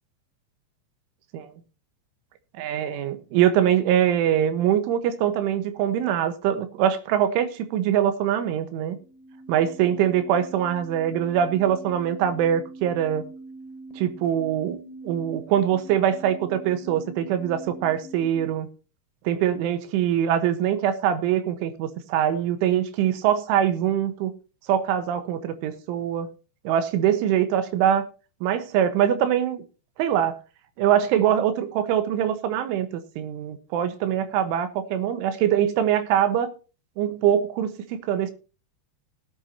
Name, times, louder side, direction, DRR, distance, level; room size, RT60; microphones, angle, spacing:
voice 1, 2.6-9.0 9.5-13.2 14.0-14.8 15.0-18.7 19.3-24.3 24.7-26.3 26.7-28.1 28.4-29.7 30.0-30.4 30.8-32.9 33.2-36.5 37.0-38.3, right 10 dB, 85° right, 3.7 m, -23 dB
sound 1, 8.9-18.5, right 2 dB, 75° left, 4.2 m, -43 dB
18.0 x 9.6 x 2.8 m
omnidirectional pair, 5.5 m